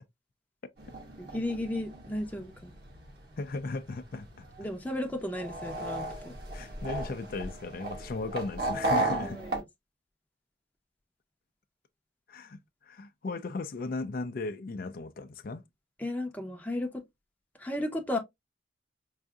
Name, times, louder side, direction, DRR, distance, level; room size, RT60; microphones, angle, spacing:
sound 1, 0.8-9.6, right 2 dB, 60° right, 1.4 m, -35 dB
voice 1, 1.2-2.7 4.6-6.4 9.2-9.6 16.0-17.0 17.6-18.2, left 1 dB, 10° left, 0.7 m, -34 dB
voice 2, 3.4-4.5 6.5-9.4 12.3-12.6 12.9-15.6, left 3 dB, 55° left, 0.4 m, -36 dB
4.8 x 2.6 x 2.3 m
head